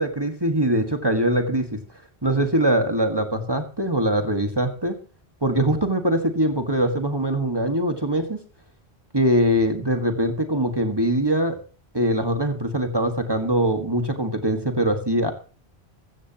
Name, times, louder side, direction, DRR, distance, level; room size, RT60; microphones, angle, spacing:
voice 1, 0.0-1.7 2.2-5.0 5.4-8.4 9.1-11.6 11.9-15.3, right 1 dB, 25° right, 6 dB, 1.7 m, -22 dB
15.0 x 14.5 x 2.9 m, 0.37 s
omnidirectional pair, 1.1 m